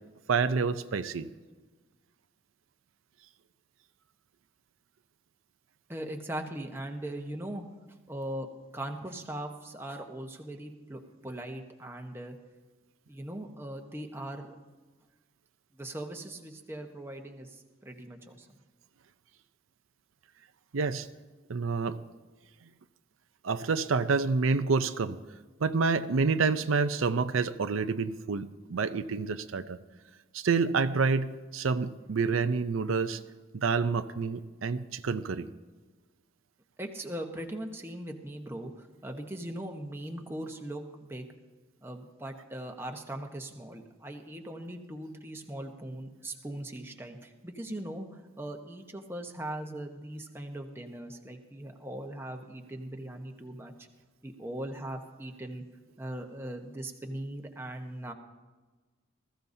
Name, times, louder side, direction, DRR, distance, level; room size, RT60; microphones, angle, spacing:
voice 1, 0.3-1.3 20.7-21.1 21.5-22.0 23.4-25.2 25.6-29.8 30.3-33.2 33.5-35.5, right 4 dB, 85° right, 10 dB, 0.5 m, -28 dB
voice 2, 5.9-7.6 8.1-12.4 13.1-14.6 15.7-18.5 36.8-41.3 41.8-53.7 54.2-55.6 56.0-58.1, right 1 dB, 10° right, 3 dB, 1.0 m, -40 dB
20.0 x 14.5 x 2.7 m, 1.3 s
head